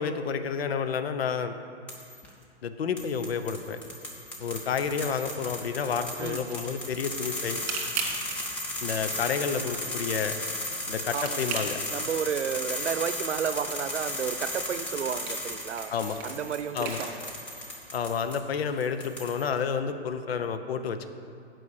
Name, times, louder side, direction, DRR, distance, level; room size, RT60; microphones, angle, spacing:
voice 1, 0.0-1.6 2.6-3.8 4.4-7.6 8.8-10.3 10.9-11.8 15.9-16.2 16.7-17.0 17.9-21.1, left 6 dB, 60° left, 9 dB, 0.8 m, -30 dB
sound 1, 1.9-2.3 3.0-18.4 18.8-19.6, left 1 dB, 5° left, 0.3 m, -35 dB
sound 2, 5.9-18.9, right 5 dB, 40° right, 2.0 m, -42 dB
voice 2, 6.2-6.6 11.1-15.9 16.2-17.3, right 8 dB, 80° right, 11 dB, 0.6 m, -32 dB
8.4 x 5.5 x 7.0 m, 2.4 s
hypercardioid pair, 130°, 34 cm